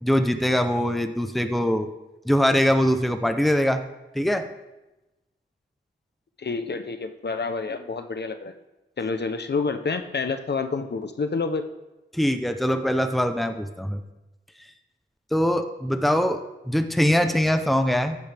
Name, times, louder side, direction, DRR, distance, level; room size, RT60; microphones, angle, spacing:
voice 1, 0.0-1.9 2.3-3.8 4.1-4.5 12.1-14.0 15.3-16.4 16.7-18.2, equal, ahead, 7 dB, 0.8 m, -22 dB
voice 2, 6.4-8.5 9.0-11.6, left 4 dB, 55° left, 8 dB, 0.8 m, -28 dB
15.0 x 10.5 x 3.5 m, 1.0 s
wide cardioid pair, 100°, 20 cm